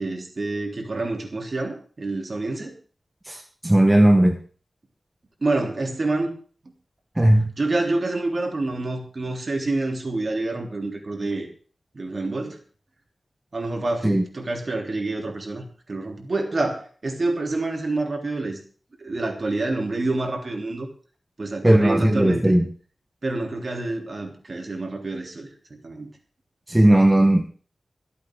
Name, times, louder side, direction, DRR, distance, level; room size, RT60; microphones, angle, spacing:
voice 1, 0.0-2.7 5.4-6.3 7.3-11.5 11.9-12.6 13.5-18.6 19.0-20.9 21.4-22.6 23.2-25.5 25.8-26.1, right 2 dB, 45° right, 2 dB, 3.6 m, -27 dB
voice 2, 3.3-4.4 7.2-7.5 14.0-14.2 21.6-22.6 26.7-27.5, right 1 dB, 15° right, 4 dB, 1.2 m, -17 dB
24.5 x 8.5 x 3.9 m, 0.42 s
wide cardioid pair, 120°, 0 cm